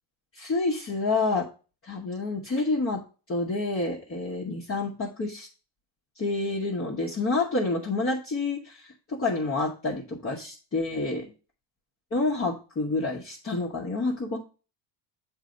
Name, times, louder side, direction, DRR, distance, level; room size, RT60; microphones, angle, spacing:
voice 1, 0.3-1.4 1.8-3.0 3.3-5.5 6.2-11.3 12.1-14.4, left 3 dB, 25° left, -4 dB, 1.0 m, -28 dB
7.3 x 2.8 x 5.0 m, 0.35 s
cardioid pair, 120°, 49 cm